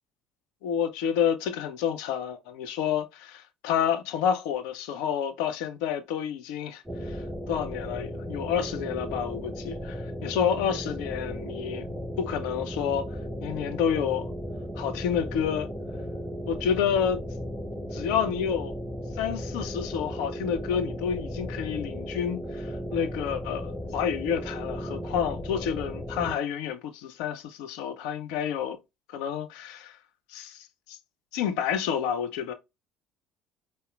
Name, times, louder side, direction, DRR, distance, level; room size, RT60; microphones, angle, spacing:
voice 1, 0.6-13.1 13.4-14.3 14.8-15.7 16.5-17.2 17.9-18.7 19.1-28.8 29.1-30.0 30.3-31.0 31.3-32.5, left 8 dB, 60° left, 0.5 m, -29 dB
sound 1, 6.9-26.4, equal, 5° right, 1.8 m, -36 dB
4.1 x 2.0 x 2.4 m
figure-of-eight pair, 60°, 0 cm